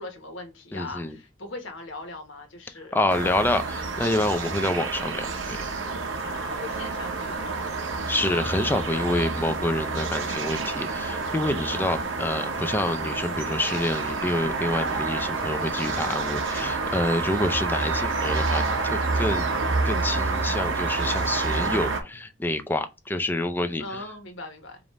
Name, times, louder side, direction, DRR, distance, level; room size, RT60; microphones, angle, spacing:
voice 1, 0.0-3.4 6.2-7.7 8.7-9.2 23.8-24.8, left 2 dB, 90° left, 1.3 m, -40 dB
voice 2, 0.7-1.2 2.9-5.6 8.1-24.0, left 1 dB, 10° left, 0.4 m, -27 dB
sound 1, 3.1-22.0, right 3 dB, 85° right, 0.8 m, -28 dB
5.1 x 2.5 x 3.1 m
head